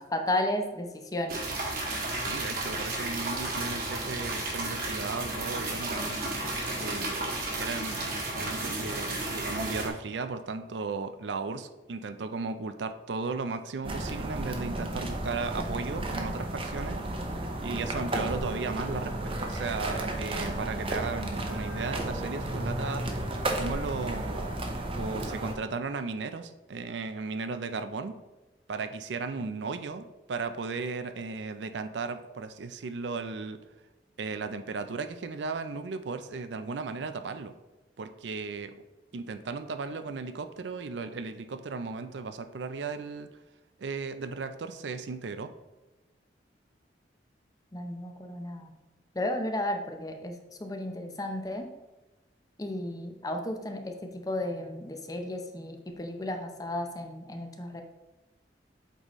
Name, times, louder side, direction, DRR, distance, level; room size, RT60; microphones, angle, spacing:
voice 1, 0.0-1.4 47.7-48.7 49.1-51.7 52.6-57.8, left 1 dB, 20° left, 5 dB, 0.6 m, -33 dB
sound 1, 1.3-9.9, right 2 dB, 55° right, 1.3 m, -33 dB
voice 2, 2.1-6.2 6.8-17.0 17.6-23.1 23.6-24.6 25.0-28.2 28.7-33.6 34.2-37.5 38.0-38.8 39.1-43.3 43.8-45.5, right 4 dB, 80° right, 10 dB, 0.5 m, -36 dB
sound 2, 13.8-25.5, right 1 dB, 30° right, 0.7 m, -33 dB
Wind instrument woodwind instrument, 16.7-20.6 20.9-25.2, right 1 dB, 70° left, 1.7 m, -49 dB
8.0 x 4.1 x 3.1 m, 1.1 s
head